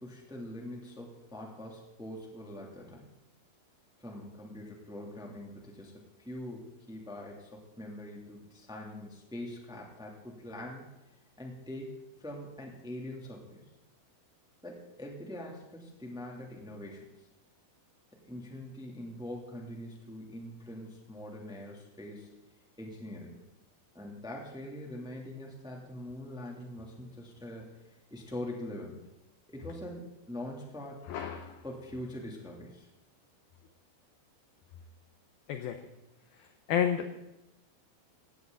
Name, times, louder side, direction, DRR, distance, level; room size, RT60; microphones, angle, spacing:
voice 1, 0.0-3.1 4.0-10.8 11.4-11.9 12.2-13.6 14.6-17.0 18.2-22.3 22.8-23.4 23.9-29.0 29.5-31.0 31.6-32.9, left 1 dB, ahead, -1 dB, 1.6 m, -43 dB
voice 2, 31.1-31.6 35.5-35.8 36.7-37.1, left 9 dB, 80° left, 7 dB, 2.2 m, -30 dB
18.0 x 17.0 x 4.0 m, 0.93 s
omnidirectional pair, 5.3 m